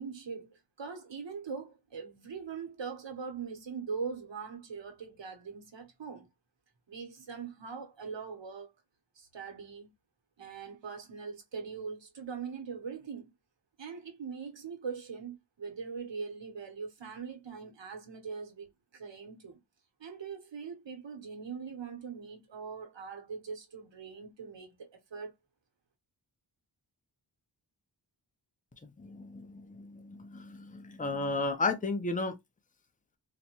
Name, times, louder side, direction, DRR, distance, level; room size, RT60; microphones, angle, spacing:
voice 1, 0.0-6.3 6.9-8.7 9.2-9.9 10.4-13.3 13.8-19.6 20.0-25.3, right 5 dB, 75° right, 1.0 m, -41 dB
voice 2, 28.8-32.3, left 3 dB, 20° left, 0.6 m, -34 dB
4.0 x 2.1 x 2.9 m
wide cardioid pair, 80°, 44 cm